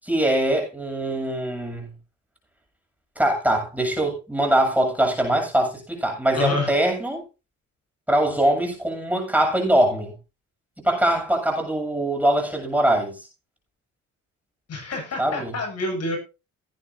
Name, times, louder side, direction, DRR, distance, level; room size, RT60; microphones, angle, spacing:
voice 1, 0.0-1.9 3.2-7.2 8.1-10.2 10.8-13.2 15.2-15.5, right 1 dB, 5° right, 7.6 m, -22 dB
voice 2, 6.3-6.7 14.7-16.2, left 3 dB, 55° left, 7.5 m, -28 dB
17.5 x 9.9 x 2.7 m
cardioid pair, 90°, 30 cm